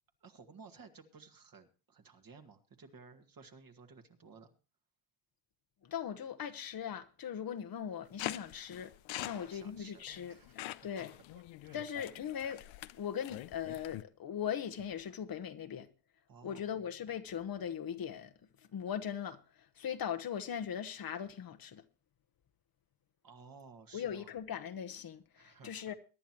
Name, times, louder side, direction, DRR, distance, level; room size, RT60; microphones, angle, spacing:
voice 1, 0.2-4.5 9.2-11.2 11.6-12.2 16.3-16.7 23.2-24.3 25.3-25.9, right 5 dB, 45° right, 2.0 m, -56 dB
voice 2, 5.8-8.9 9.2-10.3 10.8-11.1 11.7-12.6 13.0-15.9 16.4-18.3 18.7-21.8 23.9-25.9, left 8 dB, 45° left, 1.1 m, -39 dB
sound 1, 8.2-14.0, left 16 dB, 70° left, 0.7 m, -45 dB
22.5 x 10.5 x 3.0 m
cardioid pair, 90°, 49 cm